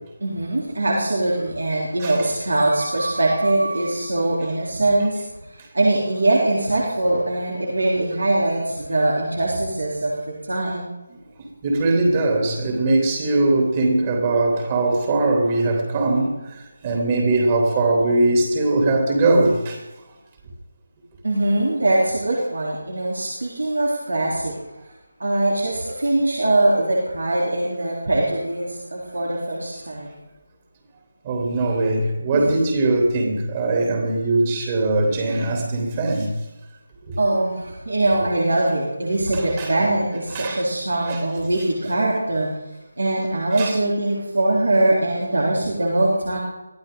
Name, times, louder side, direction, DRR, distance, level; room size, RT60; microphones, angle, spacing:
voice 1, 0.2-5.2 5.7-10.9 21.2-24.6 25.2-30.1 32.3-32.5 35.0-35.1 37.2-42.5 43.0-46.4, right 2 dB, 70° right, 3.6 m, -22 dB
voice 2, 11.4-19.8 31.2-36.3 39.3-39.7 40.3-40.6 41.0-41.2 43.6-43.7, right 2 dB, 25° right, 3.3 m, -21 dB
23.0 x 14.5 x 3.9 m
figure-of-eight pair, 155°, 0 cm